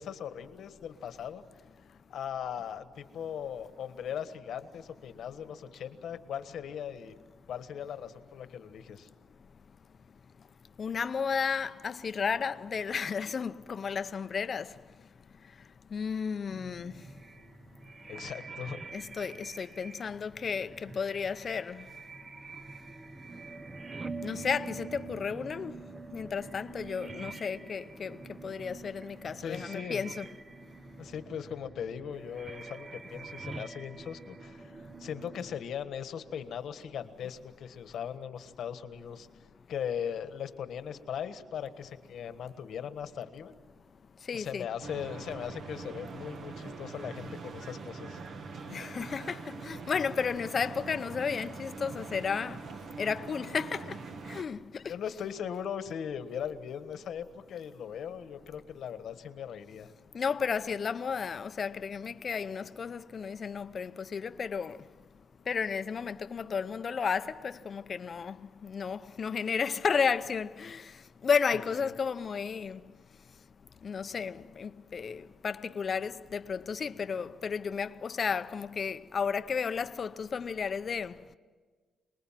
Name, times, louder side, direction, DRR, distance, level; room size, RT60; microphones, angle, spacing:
voice 1, 0.0-1.4 1.9-7.2 7.5-9.1 18.1-18.8 29.4-30.0 31.0-39.3 39.7-43.5 44.3-48.2 54.9-59.9 71.5-71.9, left 8 dB, 70° left, 1.5 m, -39 dB
voice 2, 10.8-17.2 18.0-18.1 18.9-22.0 24.2-30.3 30.7-30.8 44.2-44.7 48.7-54.9 60.1-65.0 65.4-73.4 73.8-81.3, left 6 dB, 45° left, 0.7 m, -33 dB
sound 1, 16.5-35.6, right 3 dB, 25° right, 0.7 m, -46 dB
sound 2, 44.8-54.4, right 4 dB, 60° right, 1.6 m, -43 dB
28.0 x 20.0 x 7.5 m
cardioid pair, 115°, 0 cm